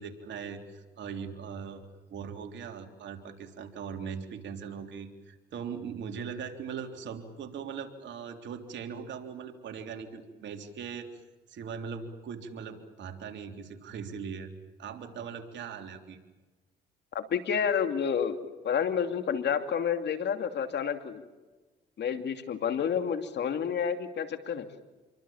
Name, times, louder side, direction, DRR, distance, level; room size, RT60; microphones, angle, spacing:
voice 1, 0.0-11.1 11.5-14.5 14.8-16.2, right 6 dB, 70° right, 5 dB, 3.6 m, -40 dB
voice 2, 17.1-18.4 18.6-21.2 22.0-24.7, left 7 dB, 65° left, 8 dB, 2.8 m, -29 dB
28.0 x 23.5 x 7.4 m, 1.2 s
supercardioid pair, 65°, 19 cm